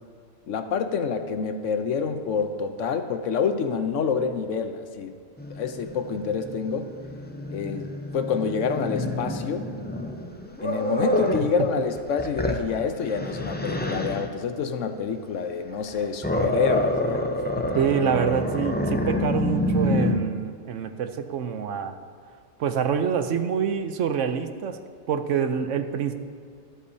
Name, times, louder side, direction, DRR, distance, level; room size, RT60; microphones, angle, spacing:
voice 1, 0.5-5.1 5.5-6.9 7.5-9.7 10.6-17.2 17.6-17.7, left 6 dB, 75° left, 8 dB, 1.1 m, -27 dB
Growling, 5.4-11.5 12.0-14.3 15.7-20.2, left 1 dB, 10° left, 0.4 m, -28 dB
voice 2, 17.7-22.0 22.6-24.8 25.1-26.1, right 7 dB, 75° right, 9 dB, 1.0 m, -26 dB
24.0 x 8.4 x 2.8 m, 2.2 s
omnidirectional pair, 1.3 m